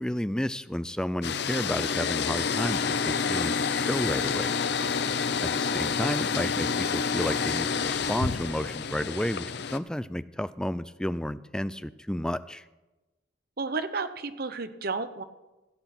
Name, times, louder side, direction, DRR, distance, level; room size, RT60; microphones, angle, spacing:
voice 1, 0.0-4.5 5.4-12.7, left 1 dB, 5° left, 14 dB, 0.3 m, -32 dB
sound 1, 1.2-9.8, left 5 dB, 60° left, 0.6 m, -28 dB
voice 2, 5.1-5.6 13.6-15.2, right 4 dB, 55° right, 11 dB, 0.8 m, -33 dB
16.0 x 7.9 x 5.9 m, 1.1 s
head